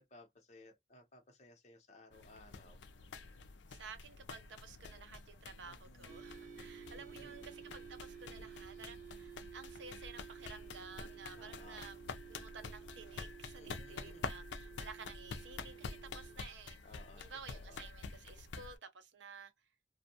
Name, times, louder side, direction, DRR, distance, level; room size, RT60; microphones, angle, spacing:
voice 1, 0.0-2.8 5.6-6.2 6.9-7.4 8.3-8.5 11.3-11.9 13.6-14.4 16.8-17.2 17.5-17.8, left 2 dB, 35° left, 0.7 m, -59 dB
sound 1, 2.1-18.8, left 4 dB, 70° left, 0.4 m, -48 dB
voice 2, 3.7-12.0 12.3-16.8 17.1-19.5, right 5 dB, 75° right, 0.6 m, -53 dB
sound 2, 6.1-16.4, right 8 dB, 45° right, 0.9 m, -53 dB
2.6 x 2.2 x 2.7 m
head